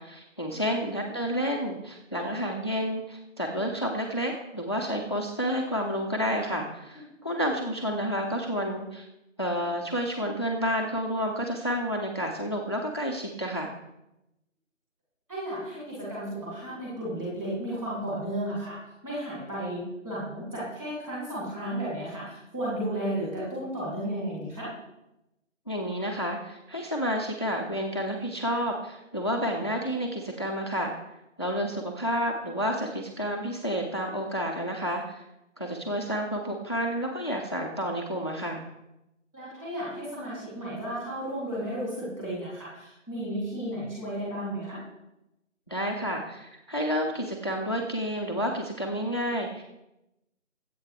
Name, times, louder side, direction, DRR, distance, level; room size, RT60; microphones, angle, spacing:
voice 1, 0.0-9.1 9.4-13.8 25.7-30.9 31.4-35.2 35.6-38.6 45.7-49.6, equal, 20° left, 1 dB, 0.8 m, -30 dB
voice 2, 15.3-18.8 19.0-24.7 39.3-44.8, right 1 dB, 5° right, -8 dB, 2.6 m, -33 dB
22.0 x 8.5 x 3.3 m, 0.90 s
figure-of-eight pair, 170°, 39 cm